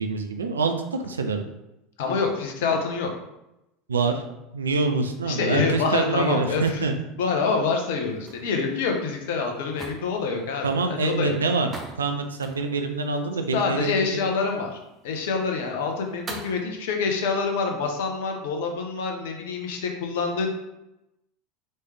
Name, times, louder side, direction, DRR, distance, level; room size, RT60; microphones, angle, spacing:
voice 1, 0.0-1.5 3.9-4.2 4.5-6.9 10.6-11.7 12.0-14.0, right 3 dB, 80° right, 5 dB, 0.4 m, -25 dB
voice 2, 2.0-3.1 5.2-6.9 7.2-11.4 13.5-14.8 15.0-20.5, left 4 dB, 65° left, 3 dB, 0.8 m, -26 dB
sound 1, 7.9-16.6, right 2 dB, 25° right, 0.7 m, -45 dB
4.3 x 3.2 x 3.3 m, 0.90 s
figure-of-eight pair, 75°, 0 cm